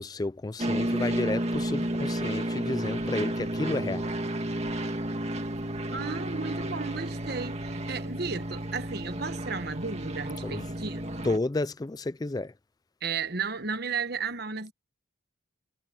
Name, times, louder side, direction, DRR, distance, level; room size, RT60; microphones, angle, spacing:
voice 1, 0.0-4.1 10.4-10.7 11.2-12.5, left 2 dB, 20° left, 0.4 m, -31 dB
sound 1, 0.6-11.4, right 1 dB, 35° right, 2.0 m, -32 dB
voice 2, 5.9-11.2 13.0-14.7, right 5 dB, 55° right, 1.2 m, -34 dB
head